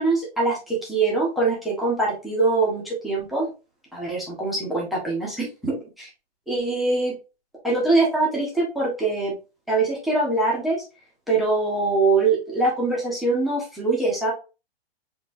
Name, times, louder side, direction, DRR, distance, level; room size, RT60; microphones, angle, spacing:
voice 1, 0.0-3.5 3.9-6.1 6.5-7.1 7.6-9.3 9.7-10.8 11.3-14.3, right 3 dB, ahead, -4 dB, 0.8 m, -23 dB
3.9 x 2.9 x 2.5 m, 0.30 s
hypercardioid pair, 160°, 32 cm